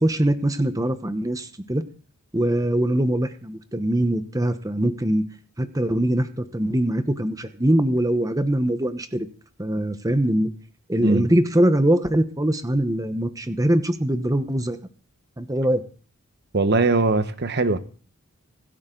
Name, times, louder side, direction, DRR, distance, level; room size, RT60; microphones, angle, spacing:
voice 1, 0.0-1.8 2.3-5.2 5.6-9.3 9.6-10.5 10.9-14.8 15.4-15.8, right 1 dB, 15° right, 1.0 m, -22 dB
voice 2, 16.5-17.8, right 3 dB, 50° right, 1.1 m, -20 dB
26.5 x 8.8 x 3.9 m
head